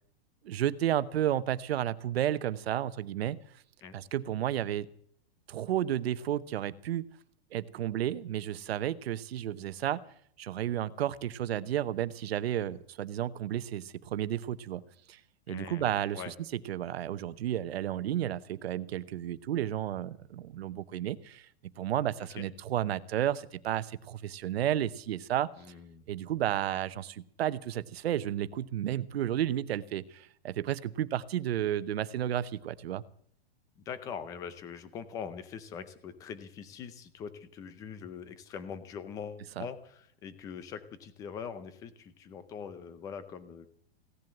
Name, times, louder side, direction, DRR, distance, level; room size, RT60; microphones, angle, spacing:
voice 1, 0.4-3.4 3.9-4.9 5.5-7.0 7.5-10.0 10.4-14.8 15.1-15.2 15.5-21.5 21.8-25.5 26.1-33.0 39.6-39.7, right 11 dB, 70° right, 15 dB, 1.0 m, -32 dB
voice 2, 15.5-16.3 22.3-22.5 25.6-26.0 33.9-43.7, left 7 dB, 10° left, 13 dB, 0.6 m, -42 dB
16.5 x 11.0 x 7.9 m, 0.63 s
supercardioid pair, 175°, 32 cm